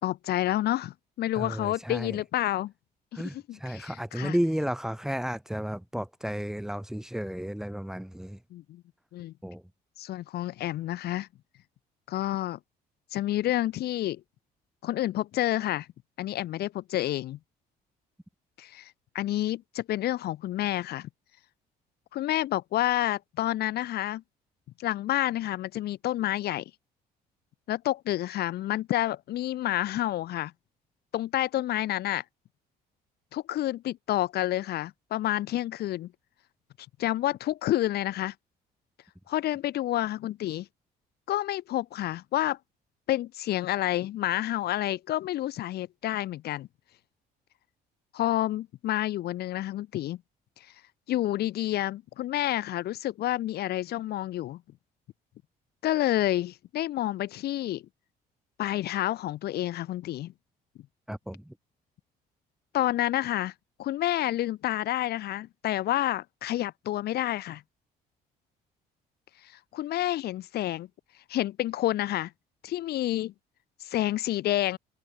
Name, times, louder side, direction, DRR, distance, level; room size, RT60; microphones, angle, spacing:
voice 1, 0.0-2.7 3.1-4.3 8.5-8.8 9.1-9.3 10.0-11.3 12.1-12.6 13.1-14.2 14.8-15.9 16.2-17.4 18.6-21.1 22.1-24.2 24.8-26.6 27.7-30.5 31.1-32.2 33.3-36.1 37.0-38.3 39.3-40.7 41.3-42.6 43.1-46.7 48.1-50.2 51.1-54.6 55.8-57.8 58.6-60.3 62.7-63.5 63.8-67.6 69.4-70.9 71.3-72.3 72.6-73.3 73.8-74.8, left 14 dB, 70° left, 4.1 m, -29 dB
voice 2, 1.3-2.2 3.1-8.4 9.4-9.6 61.1-61.6, equal, 5° right, 2.9 m, -33 dB
open air
cardioid pair, 110°, 17 cm